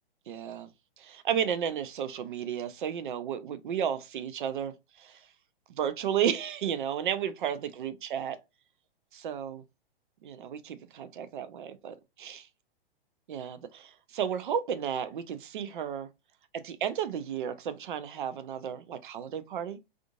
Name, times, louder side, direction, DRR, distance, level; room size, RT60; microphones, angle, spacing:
voice 1, 0.3-0.7 1.0-5.2 5.8-8.4 9.1-9.6 10.2-12.5 13.3-16.1 16.5-19.8, right 8 dB, 55° right, 0.6 m, -33 dB
3.6 x 2.5 x 2.3 m
figure-of-eight pair, 115°, 30 cm